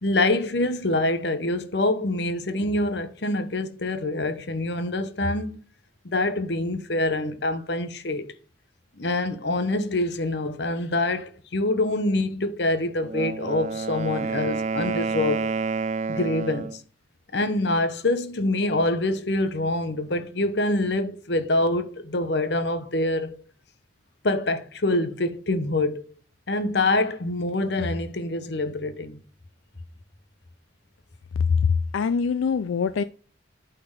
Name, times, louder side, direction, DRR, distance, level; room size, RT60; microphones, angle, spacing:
voice 1, 0.0-5.6 6.0-8.2 9.0-15.5 16.1-16.8 17.3-23.4 24.2-26.0 26.5-29.2, left 2 dB, 60° left, 1.0 m, -25 dB
Wind instrument woodwind instrument, 13.0-16.8, right 4 dB, 35° right, 0.4 m, -29 dB
voice 2, 31.5-33.0, left 5 dB, 85° left, 0.4 m, -23 dB
8.6 x 4.3 x 5.5 m
head